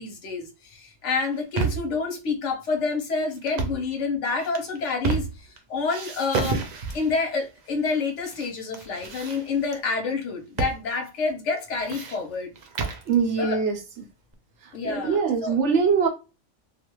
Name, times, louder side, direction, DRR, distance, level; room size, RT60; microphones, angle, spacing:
voice 1, 0.0-5.3 5.7-6.6 6.9-12.5 13.4-13.6 14.7-15.6, left 4 dB, 75° left, 1.1 m, -28 dB
sound 1, 1.2-2.0 3.4-3.9 4.4-5.6 5.9-7.2 7.9-8.5 8.7-9.8 10.6-10.8 11.1-11.2 11.6-13.1, right 5 dB, 55° right, 0.4 m, -30 dB
voice 2, 13.1-13.8 14.6-16.1, right 5 dB, 70° right, 1.1 m, -23 dB
2.4 x 2.4 x 3.0 m
omnidirectional pair, 1.2 m